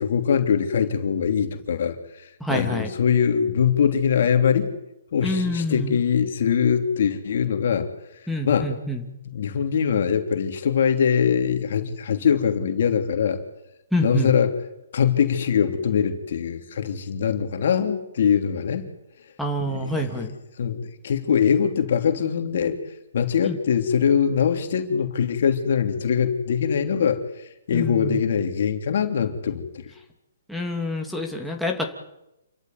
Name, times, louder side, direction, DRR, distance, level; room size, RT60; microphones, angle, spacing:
voice 1, 0.0-4.7 5.1-7.9 8.4-8.7 9.3-13.4 14.0-14.6 14.9-18.8 19.7-20.2 20.6-22.8 23.1-27.2 27.7-29.9, left 7 dB, 60° left, 5 dB, 3.1 m, -22 dB
voice 2, 2.4-2.9 5.2-6.0 8.3-9.1 13.9-14.3 19.4-20.4 23.4-23.6 27.7-28.2 30.5-31.8, equal, ahead, 3 dB, 2.9 m, -27 dB
28.5 x 14.0 x 9.3 m, 0.87 s
hypercardioid pair, 140°, 0 cm